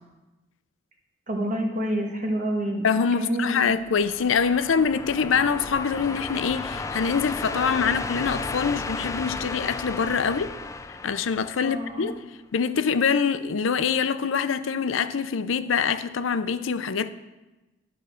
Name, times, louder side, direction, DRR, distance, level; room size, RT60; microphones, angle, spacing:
voice 1, 1.3-2.9 3.2-3.7 11.6-12.1, right 1 dB, 40° right, 1.5 m, -28 dB
voice 2, 2.8-10.5 11.0-12.2 12.5-17.1, left 6 dB, 80° left, 0.5 m, -24 dB
sound 1, 3.7-12.2, left 3 dB, 15° left, 0.3 m, -34 dB
11.0 x 5.6 x 6.3 m
head